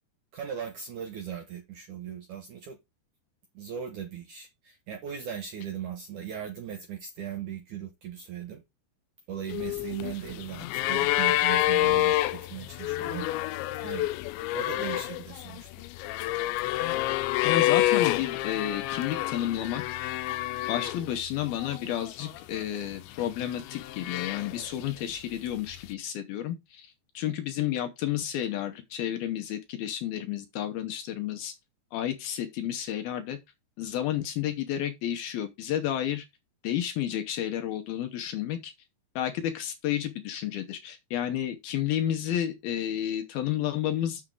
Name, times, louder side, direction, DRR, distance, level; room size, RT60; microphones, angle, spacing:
voice 1, 0.3-2.8 3.5-8.6 9.3-13.3 13.8-14.1 14.5-15.7 17.5-17.7, right 8 dB, 75° right, 1.8 m, -38 dB
sound 1, 9.5-21.2 21.5-22.4 23.1-24.8 25.9-26.0, left 16 dB, 90° left, 2.9 m, -28 dB
voice 2, 17.1-19.8 20.7-31.5 31.9-33.4 33.8-36.3 36.6-38.7 39.2-44.2, left 11 dB, 70° left, 2.5 m, -31 dB
7.6 x 7.2 x 3.8 m
omnidirectional pair, 5.1 m